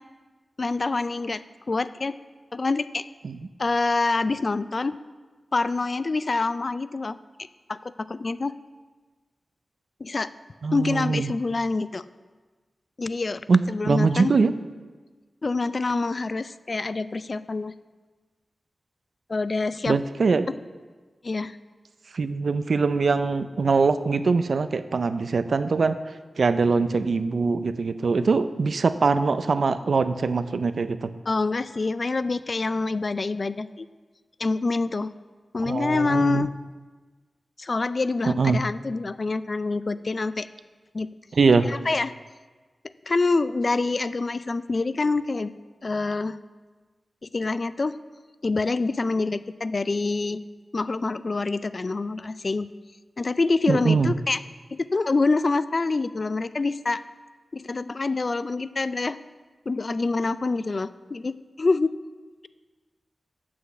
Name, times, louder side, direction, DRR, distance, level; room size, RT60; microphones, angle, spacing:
voice 1, 0.6-1.4 1.7-2.1 2.5-3.0 3.6-5.0 5.5-7.2 7.7-8.5 10.0-10.3 10.7-12.0 13.0-13.4 13.7-14.3 15.4-17.7 19.3-20.0 21.2-21.6 31.3-33.9 34.4-35.1 35.5-36.6 37.6-40.5 40.9-41.1 41.7-42.1 43.1-45.5 45.8-46.4 47.2-47.9 48.4-50.4 50.7-52.7 53.2-54.4 54.7-57.0 57.5-59.2 59.7-61.3 61.6-62.0, left 3 dB, 45° left, 15 dB, 0.3 m, -26 dB
voice 2, 10.6-11.3 13.5-13.6 13.9-14.5 19.9-20.5 22.1-26.0 26.4-31.1 35.6-36.5 38.2-38.6 41.3-41.7 53.7-54.1, right 4 dB, 70° right, 12 dB, 0.4 m, -22 dB
7.6 x 6.2 x 6.9 m, 1.4 s
wide cardioid pair, 100°, 0 cm